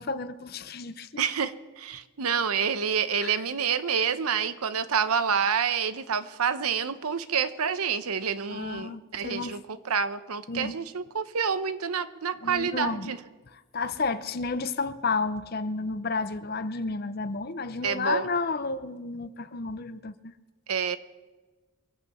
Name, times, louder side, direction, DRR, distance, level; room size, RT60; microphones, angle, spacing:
voice 1, 0.0-1.2 3.2-3.4 8.5-9.6 10.5-10.7 12.4-13.1 13.5-20.3, left 4 dB, 45° left, 0.6 m, -31 dB
voice 2, 1.2-13.2 17.8-18.3 20.7-21.0, right 6 dB, 80° right, 0.8 m, -28 dB
23.5 x 8.2 x 5.5 m
head